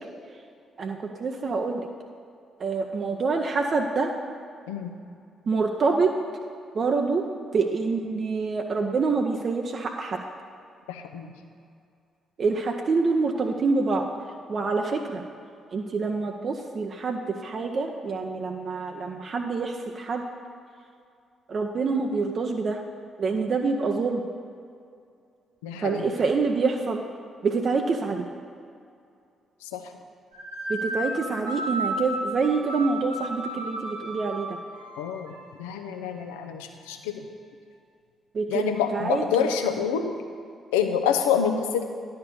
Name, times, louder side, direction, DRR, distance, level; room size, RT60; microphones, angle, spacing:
voice 1, 0.8-1.9 2.6-4.1 5.5-6.1 6.7-7.3 7.5-10.2 12.4-14.1 14.5-15.2 15.7-20.2 21.5-22.8 23.2-24.2 25.8-27.0 27.4-28.3 30.7-34.6 38.3-39.5, right 4 dB, 45° right, 2 dB, 0.6 m, -26 dB
voice 2, 10.9-11.3 25.6-26.0 29.6-29.9 35.0-35.3 35.6-37.2 38.5-40.1 40.7-41.8, left 7 dB, 75° left, 6 dB, 0.6 m, -27 dB
sound 1, 30.3-35.4, right 1 dB, 75° right, 1.3 m, -33 dB
10.5 x 4.4 x 6.9 m, 2.4 s
figure-of-eight pair, 40°, 0 cm